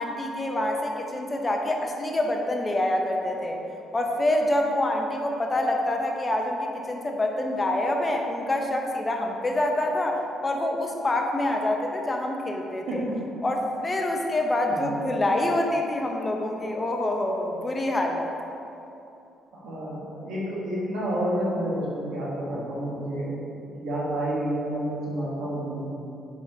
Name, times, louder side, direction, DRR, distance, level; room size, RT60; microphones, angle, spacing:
voice 1, 0.0-3.6 3.9-13.0 13.4-18.3, left 1 dB, 25° left, 2 dB, 0.7 m, -26 dB
voice 2, 12.9-13.3 14.7-14.9 19.5-23.3 23.7-25.8, right 1 dB, 70° right, -6 dB, 1.5 m, -29 dB
4.8 x 4.1 x 4.7 m, 2.8 s
cardioid pair, 85°, 0 cm